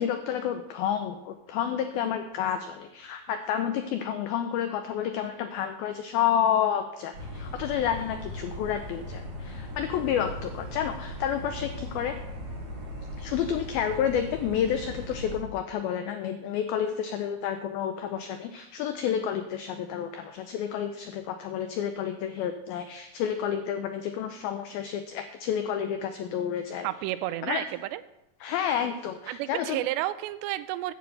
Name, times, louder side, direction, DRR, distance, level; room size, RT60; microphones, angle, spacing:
voice 1, 0.0-12.2 13.2-26.9 27.4-27.6 28.4-29.8, left 9 dB, 90° left, 7 dB, 2.1 m, -30 dB
sound 1, 7.1-15.4, equal, 45° right, 3.9 m, -39 dB
voice 2, 26.8-28.0 29.3-30.9, right 15 dB, 85° right, 13 dB, 2.7 m, -31 dB
10.5 x 6.0 x 7.9 m, 0.86 s
omnidirectional pair, 5.1 m